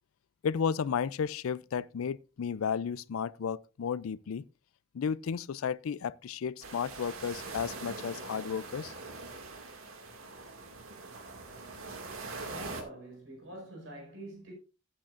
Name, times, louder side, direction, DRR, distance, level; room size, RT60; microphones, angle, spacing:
voice 1, 0.4-4.5 4.9-8.9, left 7 dB, 80° left, 0.4 m, -33 dB
sound 1, 6.6-12.8, right 3 dB, 80° right, 2.1 m, -43 dB
voice 2, 12.5-14.5, right 1 dB, 60° right, 4.9 m, -45 dB
15.0 x 8.8 x 2.5 m
head